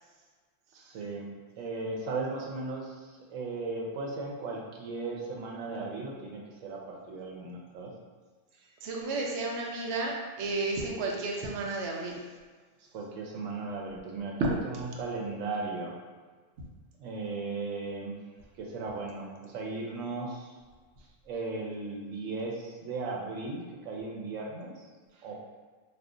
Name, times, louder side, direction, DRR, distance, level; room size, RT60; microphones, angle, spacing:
voice 1, 0.7-1.3 1.6-7.9 12.9-15.9 17.0-18.2 18.6-20.5 21.3-24.7 25.2-25.5, right 3 dB, 90° right, -2 dB, 1.0 m, -36 dB
voice 2, 8.8-12.2 14.4-14.5, right 2 dB, 70° right, -1 dB, 0.8 m, -32 dB
2.4 x 2.4 x 3.7 m, 1.4 s
omnidirectional pair, 1.3 m